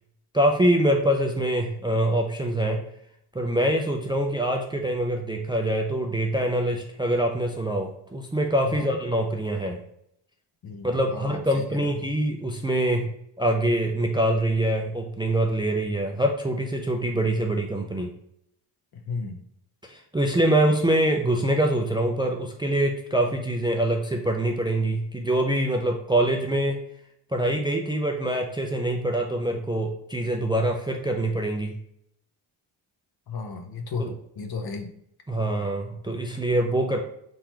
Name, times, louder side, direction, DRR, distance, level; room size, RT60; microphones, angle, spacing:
voice 1, 0.3-2.8 3.3-9.8 10.8-18.1 19.8-26.8 27.3-31.8 34.0-34.1 35.3-37.0, right 1 dB, 10° right, 2 dB, 0.4 m, -24 dB
voice 2, 8.7-9.0 10.6-11.9 18.9-19.4 33.3-34.9, left 4 dB, 50° left, 5 dB, 0.8 m, -34 dB
3.9 x 3.0 x 4.4 m, 0.74 s
cardioid pair, 80°, 49 cm